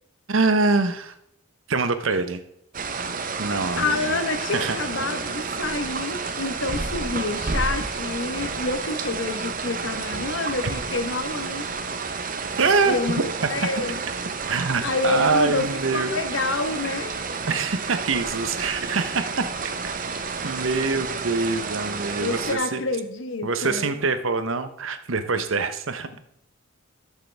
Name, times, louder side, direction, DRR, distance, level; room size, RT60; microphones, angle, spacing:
voice 1, 0.3-1.1 1.7-2.4 3.4-4.2 4.5-4.8 12.6-12.9 13.4-13.7 14.5-16.1 17.5-19.4 20.4-22.8 23.4-26.1, right 4 dB, 80° right, 10 dB, 0.9 m, -24 dB
sound 1, 2.7-22.6, right 4 dB, 40° right, 0.8 m, -30 dB
voice 2, 3.8-11.7 12.8-14.0 14.8-17.1 22.1-23.9, left 3 dB, 70° left, 8 dB, 1.1 m, -28 dB
12.5 x 6.7 x 3.4 m, 0.76 s
head